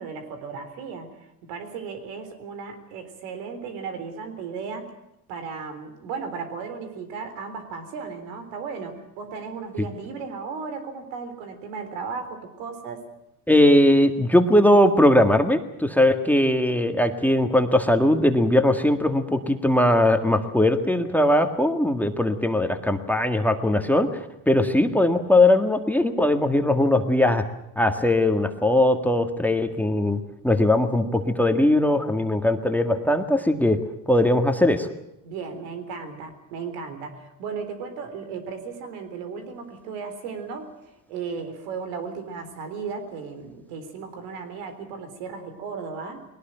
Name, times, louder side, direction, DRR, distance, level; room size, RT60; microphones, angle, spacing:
voice 1, 0.0-4.9 5.3-13.1 35.2-46.3, right 5 dB, 85° right, 8 dB, 4.0 m, -35 dB
voice 2, 13.5-27.4 27.8-33.8 34.1-34.9, left 1 dB, 5° left, 7 dB, 1.8 m, -20 dB
20.5 x 18.5 x 9.0 m, 0.83 s
supercardioid pair, 95°, 47 cm